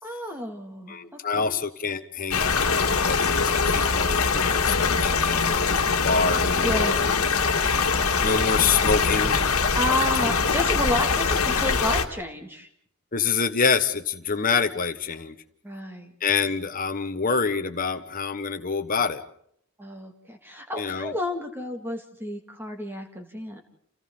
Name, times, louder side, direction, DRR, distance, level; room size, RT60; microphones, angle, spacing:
voice 1, 0.0-1.0 1.3-1.6 6.6-7.0 9.7-12.7 15.6-16.1 19.8-23.6, left 1 dB, 10° right, 3 dB, 2.3 m, -31 dB
voice 2, 0.9-7.2 8.2-9.4 10.2-10.3 13.1-15.4 16.2-19.2 20.7-21.1, left 5 dB, 40° left, 8 dB, 1.3 m, -26 dB
sound 1, 2.3-12.1, left 5 dB, 85° left, 1.8 m, -23 dB
29.5 x 29.0 x 3.9 m, 0.70 s
head